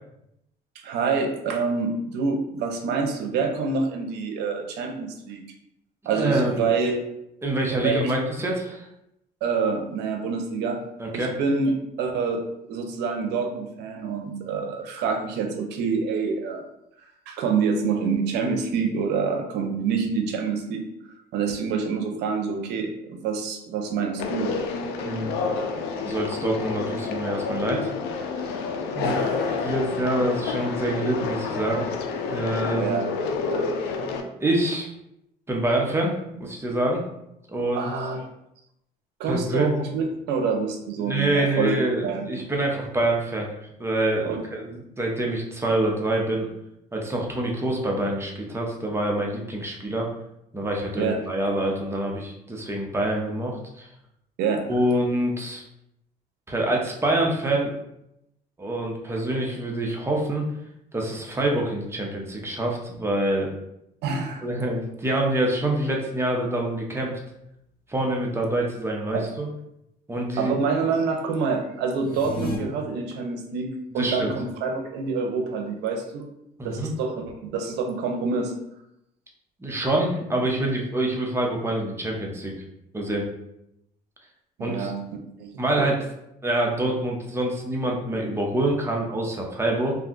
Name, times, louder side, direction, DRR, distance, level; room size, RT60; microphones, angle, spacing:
voice 1, 0.8-5.4 6.1-7.0 7.8-8.1 9.4-10.8 11.1-12.4 12.7-16.7 17.3-20.8 21.3-24.6 29.0-29.6 32.8-33.0 33.5-33.6 37.7-38.2 39.2-41.8 42.0-42.3 44.2-44.4 51.0-51.2 54.4-54.6 64.0-64.5 70.4-76.3 76.6-78.5 84.6-85.0 85.4-85.9, right 5 dB, 85° right, 5 dB, 0.6 m, -27 dB
voice 2, 6.1-6.7 7.4-8.9 11.0-11.3 25.0-25.3 26.0-27.9 28.9-29.2 29.6-31.9 32.3-33.0 34.4-34.9 35.5-37.0 37.5-37.9 39.3-39.9 41.1-43.5 43.8-46.5 46.9-50.1 50.5-53.9 54.7-55.6 56.5-57.7 58.6-60.5 60.9-63.5 64.4-67.1 67.9-69.5 70.1-70.5 74.0-74.3 76.6-76.9 79.6-82.5 82.9-83.3 84.6-84.9 85.6-86.0 86.4-89.9, right 1 dB, 15° right, -1 dB, 0.7 m, -26 dB
Conversation, 24.2-34.2, left 4 dB, 85° left, 0.4 m, -29 dB
sound 1, 71.9-72.6, left 2 dB, 65° left, 1.0 m, -32 dB
2.6 x 2.3 x 3.7 m, 0.82 s
cardioid pair, 110°, 17 cm